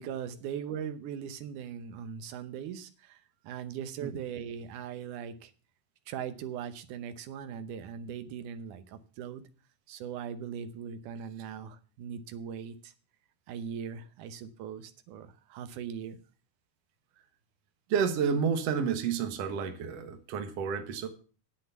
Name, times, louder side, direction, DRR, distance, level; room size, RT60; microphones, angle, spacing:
voice 1, 0.0-5.5 6.1-9.4 9.9-12.9 13.5-16.2, right 8 dB, 80° right, 10 dB, 2.4 m, -40 dB
voice 2, 17.9-21.1, right 6 dB, 60° right, 7 dB, 2.1 m, -30 dB
9.5 x 7.7 x 6.9 m, 0.38 s
omnidirectional pair, 3.7 m